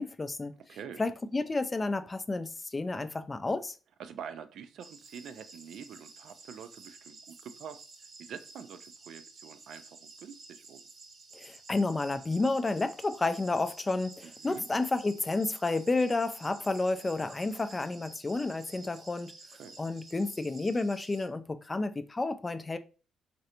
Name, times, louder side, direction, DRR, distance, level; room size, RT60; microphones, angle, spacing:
voice 1, 0.0-0.5 1.0-3.8 11.3-19.3 19.8-22.8, left 3 dB, 20° left, 0.3 m, -31 dB
voice 2, 0.7-1.0 4.0-7.8 8.2-10.8 14.4-14.7 19.6-19.7, right 7 dB, 70° right, 0.3 m, -46 dB
sound 1, 4.8-21.3, right 3 dB, 55° right, 0.8 m, -52 dB
3.2 x 2.5 x 2.8 m
cardioid pair, 90°, 0 cm